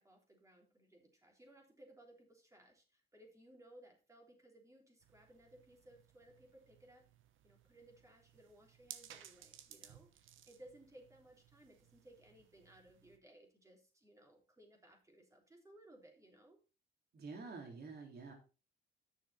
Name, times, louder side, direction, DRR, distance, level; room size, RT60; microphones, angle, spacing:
voice 1, 0.0-7.1 7.4-16.6, right 1 dB, 15° right, 1 dB, 3.3 m, -62 dB
sound 1, 5.0-13.2, right 11 dB, 80° right, 1.0 m, -59 dB
voice 2, 17.1-18.3, right 4 dB, 55° right, 2 dB, 3.4 m, -48 dB
9.5 x 6.5 x 4.2 m, 0.32 s
cardioid pair, 90°, 20 cm